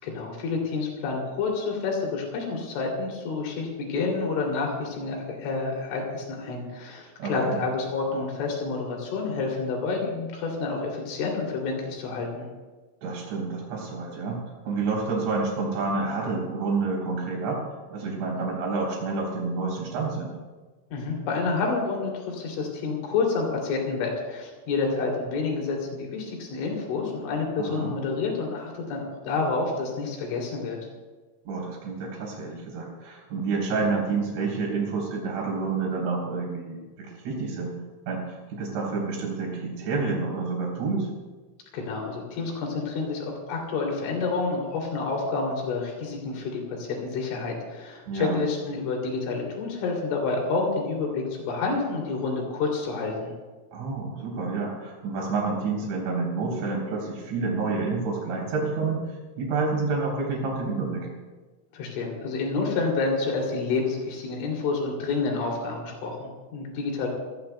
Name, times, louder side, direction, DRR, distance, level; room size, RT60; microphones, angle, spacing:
voice 1, 0.0-12.5 20.9-30.8 41.7-53.3 61.7-67.1, left 4 dB, 70° left, 0 dB, 5.3 m, -29 dB
voice 2, 7.2-7.6 13.0-17.6 17.9-20.3 27.6-27.9 31.5-37.8 38.1-41.1 48.1-48.4 53.7-59.1 59.4-61.1, right 4 dB, 65° right, -2 dB, 5.9 m, -29 dB
26.0 x 17.0 x 2.3 m, 1.3 s
omnidirectional pair, 5.7 m